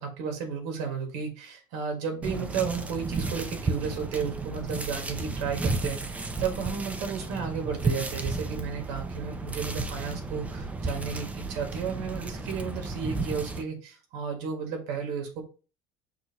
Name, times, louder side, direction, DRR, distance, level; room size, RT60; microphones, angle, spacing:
voice 1, 0.0-15.4, right 6 dB, 85° right, 3 dB, 1.6 m, -33 dB
sound 1, 2.2-13.6, right 3 dB, 15° right, 0.5 m, -33 dB
6.0 x 2.6 x 2.9 m, 0.35 s
cardioid pair, 140°, 10 cm